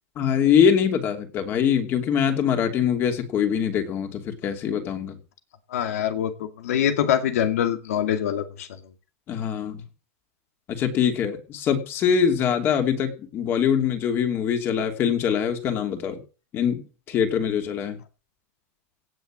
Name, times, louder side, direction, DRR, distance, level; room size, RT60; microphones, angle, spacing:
voice 1, 0.2-5.2 9.3-9.8 10.7-16.2 16.5-16.8 17.1-18.0, left 8 dB, 30° left, 6 dB, 2.8 m, -23 dB
voice 2, 5.7-8.8, left 10 dB, 90° left, 8 dB, 2.3 m, -24 dB
17.5 x 7.1 x 7.4 m, 0.36 s
supercardioid pair, 160°, 8 cm